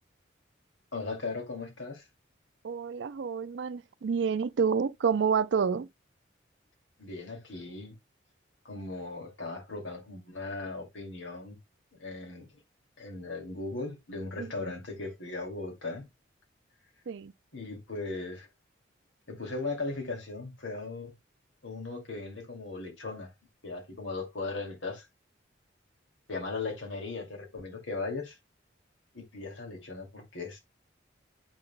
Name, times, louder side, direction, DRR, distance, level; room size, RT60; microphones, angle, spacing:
voice 1, 0.9-2.1 7.0-7.9 8.6-11.6 12.0-12.6 13.0-16.1 17.5-18.5 19.3-21.1 21.6-23.3 23.6-25.1 26.3-28.4 29.1-30.6, left 3 dB, 90° left, 2.5 m, -38 dB
voice 2, 2.6-5.9 14.4-14.5 17.1-17.3, right 6 dB, 75° right, 0.4 m, -28 dB
8.7 x 5.8 x 2.2 m
head